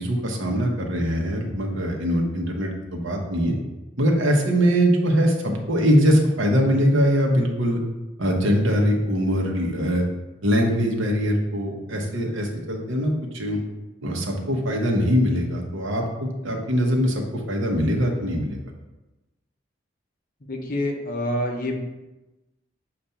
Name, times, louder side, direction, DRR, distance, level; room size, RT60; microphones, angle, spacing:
voice 1, 0.0-3.5 4.0-7.8 8.2-10.0 10.4-13.6 14.0-18.6, equal, 80° right, 1 dB, 1.0 m, -22 dB
voice 2, 20.5-21.8, left 1 dB, 45° left, 1 dB, 0.8 m, -27 dB
6.7 x 2.5 x 5.6 m, 1.1 s
head